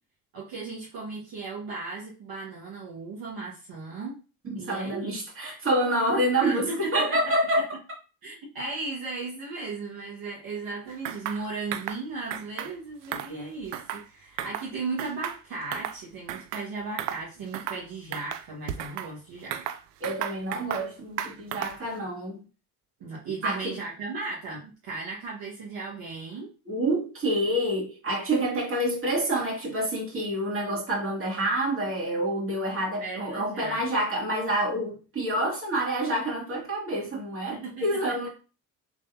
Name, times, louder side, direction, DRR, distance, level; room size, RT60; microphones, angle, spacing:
voice 1, 0.3-4.2 4.5-5.1 6.4-7.2 8.2-19.6 23.0-26.5 33.0-33.8 37.5-38.0, right 3 dB, 50° right, 1.7 m, -36 dB
voice 2, 4.4-7.7 20.0-22.4 23.4-23.8 26.7-38.3, right 1 dB, 25° right, 2.3 m, -27 dB
sound 1, 11.0-11.4 11.7-12.0 12.3-12.7 13.0-14.1 14.4-14.7 15.0-16.0 16.3-16.7 17.0-17.2 17.5-17.8 18.1-19.1 19.5-20.9 21.2-21.9, right 10 dB, 85° right, 0.5 m, -34 dB
3.7 x 3.5 x 2.7 m
hypercardioid pair, 65°, 47 cm